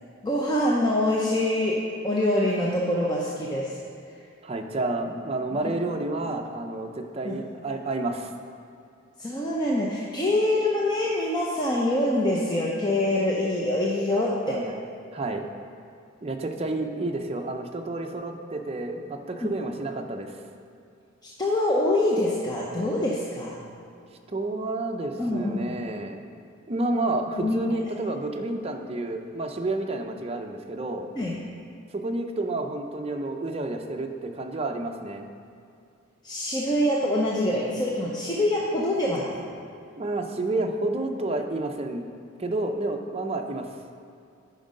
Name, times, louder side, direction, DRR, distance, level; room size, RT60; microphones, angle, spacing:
voice 1, 0.2-3.8 5.5-5.7 7.2-7.4 9.2-14.6 19.4-19.5 21.4-23.6 25.2-25.8 27.4-27.6 31.2-31.4 36.2-39.4, left 1 dB, 20° left, -4 dB, 0.7 m, -25 dB
voice 2, 4.4-8.3 14.5-14.8 15.1-15.4 16.2-20.4 24.3-26.2 26.7-31.1 31.9-35.3 40.0-42.0 42.4-43.7, right 2 dB, 30° right, 4 dB, 0.6 m, -30 dB
9.1 x 5.3 x 5.2 m, 2.6 s
head